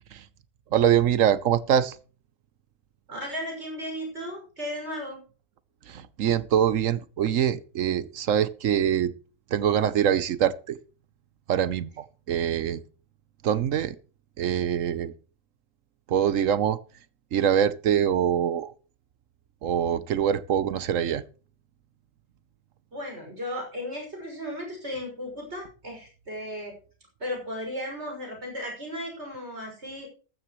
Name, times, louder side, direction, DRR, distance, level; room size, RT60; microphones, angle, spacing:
voice 1, 0.7-1.9 5.9-9.1 9.5-10.8 11.5-12.8 13.4-14.0 14.4-15.1 16.1-16.8 17.3-18.7 19.6-21.2, right 9 dB, 70° right, 1.1 m, -24 dB
voice 2, 3.1-5.2 22.9-26.8 27.2-30.1, equal, 50° right, 6.5 m, -35 dB
14.0 x 13.0 x 3.1 m
omnidirectional pair, 1.4 m